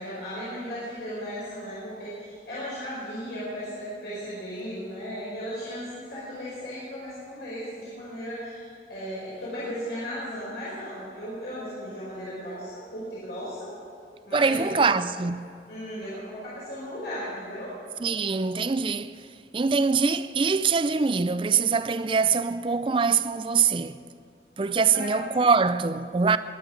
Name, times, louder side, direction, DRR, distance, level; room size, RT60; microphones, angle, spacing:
voice 1, 0.0-13.7 14.3-14.8 15.7-17.7 24.9-25.1, equal, 70° left, 5.1 m, -36 dB
voice 2, 14.3-15.5 18.0-19.2 19.5-24.0 24.6-26.4, right 5 dB, 30° right, 0.4 m, -23 dB
22.5 x 10.0 x 6.3 m
head